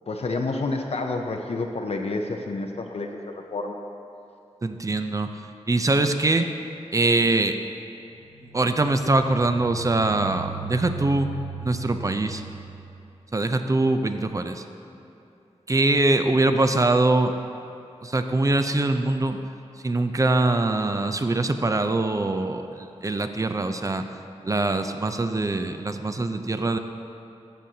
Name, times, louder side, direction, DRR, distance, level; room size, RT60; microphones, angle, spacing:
voice 1, 0.1-3.8, left 3 dB, 60° left, 3 dB, 0.6 m, -29 dB
voice 2, 4.6-5.3 5.7-6.5 6.9-7.6 8.5-11.3 11.6-12.4 13.3-14.6 15.7-17.3 18.0-19.4 19.8-24.0 24.4-26.8, right 2 dB, 30° right, 8 dB, 0.5 m, -23 dB
sound 1, 8.2-12.9, right 7 dB, 85° left, 1.4 m, -38 dB
13.5 x 7.6 x 2.8 m, 2.7 s
wide cardioid pair, 85°, 12 cm